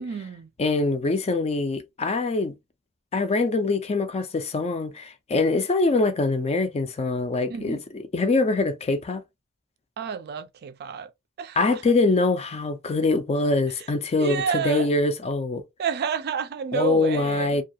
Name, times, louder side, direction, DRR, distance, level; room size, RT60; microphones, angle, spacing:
voice 1, 0.0-0.5 7.5-7.8 10.0-11.1 11.4-11.8 14.2-14.9 15.8-17.6, right 7 dB, 45° right, 0.4 m, -30 dB
voice 2, 0.6-2.5 3.1-9.2 11.6-15.6 16.7-17.6, left 3 dB, 30° left, 0.4 m, -24 dB
2.3 x 2.3 x 2.6 m
head